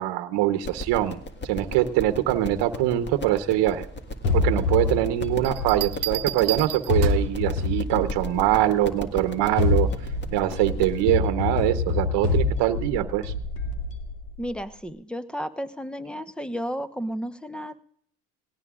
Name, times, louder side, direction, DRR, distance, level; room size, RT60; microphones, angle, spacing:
voice 1, 0.0-3.9 4.3-9.9 10.3-13.3, right 13 dB, 65° right, 9 dB, 1.1 m, -23 dB
sound 1, 0.6-11.1, left 1 dB, 25° left, 1.8 m, -37 dB
sound 2, 4.2-6.4 6.9-8.7 9.4-14.5, left 3 dB, 85° left, 2.5 m, -26 dB
Bell, 5.4-7.4 9.0-9.3, right 15 dB, 45° right, 0.8 m, -32 dB
voice 2, 14.4-17.8, equal, ahead, 12 dB, 1.0 m, -33 dB
19.0 x 17.5 x 2.5 m, 0.67 s
supercardioid pair, 75°, 45 cm